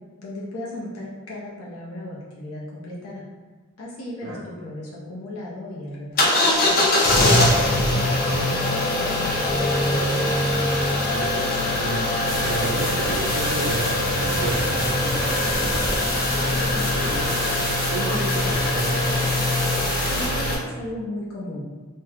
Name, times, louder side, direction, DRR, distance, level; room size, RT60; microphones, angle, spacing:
voice 1, 0.2-3.2 3.8-8.0 8.2-10.1 20.1-21.6, left 1 dB, 85° left, -5 dB, 0.8 m, -36 dB
sound 1, 6.2-20.5, left 1 dB, 45° left, 0.6 m, -22 dB
voice 2, 11.1-12.0 12.4-17.3 17.9-19.4, right 2 dB, 65° right, -4 dB, 0.5 m, -32 dB
sound 2, 12.3-20.3, left 1 dB, 15° left, 0.9 m, -31 dB
3.5 x 2.2 x 2.8 m, 1.3 s
head